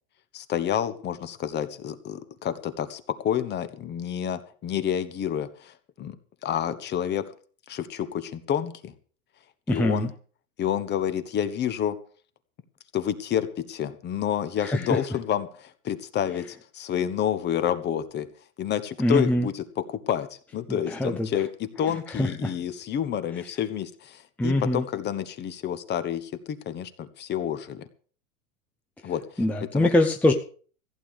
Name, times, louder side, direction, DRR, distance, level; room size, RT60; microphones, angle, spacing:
voice 1, 0.3-6.2 6.4-7.2 7.7-8.9 9.7-10.1 10.6-12.0 12.9-18.3 18.6-27.8 29.0-29.2 29.7-29.9, left 9 dB, 25° left, 12 dB, 1.3 m, -29 dB
voice 2, 9.7-10.1 14.6-15.0 19.0-19.5 20.7-21.3 22.1-22.5 24.4-24.8 29.4-30.3, left 1 dB, 5° left, 4 dB, 0.8 m, -23 dB
15.5 x 8.7 x 6.7 m, 0.42 s
hypercardioid pair, 135°, 42 cm